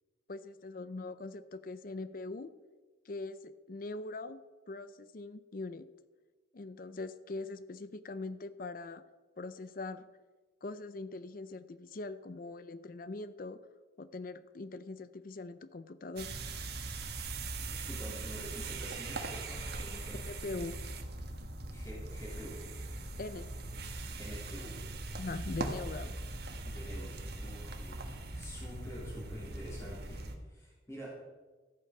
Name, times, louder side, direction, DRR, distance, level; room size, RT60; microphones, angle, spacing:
voice 1, 0.3-2.5 3.0-4.4 4.7-5.9 6.5-9.0 9.4-10.1 10.6-13.7 14.0-16.3 20.3-20.8 23.2-23.5 25.2-26.2, left 3 dB, 45° left, 13 dB, 0.5 m, -42 dB
sound 1, 16.2-30.3, right 2 dB, 55° right, 1.4 m, -40 dB
voice 2, 17.6-20.2 21.7-22.7 24.2-25.2 26.6-31.1, equal, 15° left, -6 dB, 3.2 m, -48 dB
14.0 x 8.5 x 5.9 m, 1.3 s
head